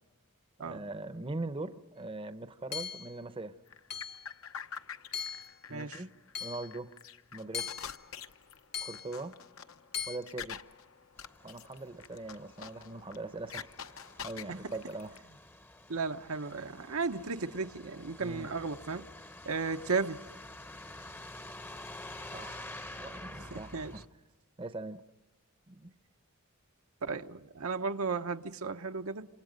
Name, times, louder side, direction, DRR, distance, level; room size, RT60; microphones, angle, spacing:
voice 1, 0.6-3.6 5.7-6.1 6.4-7.0 7.3-7.8 8.8-9.4 10.1-10.6 11.4-13.8 14.2-15.1 18.2-18.5 22.3-22.7 23.0-24.0 24.6-25.0 25.7-25.9, right 2 dB, 25° right, 0.7 m, -41 dB
Hammer / Chink clink, 2.7-3.2 3.9-4.3 5.1-5.6 6.4-6.7 7.5-8.0 8.7-9.1 9.9-10.2, left 7 dB, 50° left, 1.2 m, -39 dB
sound 1, 3.7-15.2, left 7 dB, 70° left, 1.0 m, -47 dB
voice 2, 5.7-6.0 15.9-19.0 19.4-20.2 23.4-23.9 27.0-29.3, right 4 dB, 80° right, 0.9 m, -34 dB
Truck, 11.2-24.1, left 1 dB, 10° left, 0.8 m, -49 dB
28.0 x 27.5 x 5.2 m
head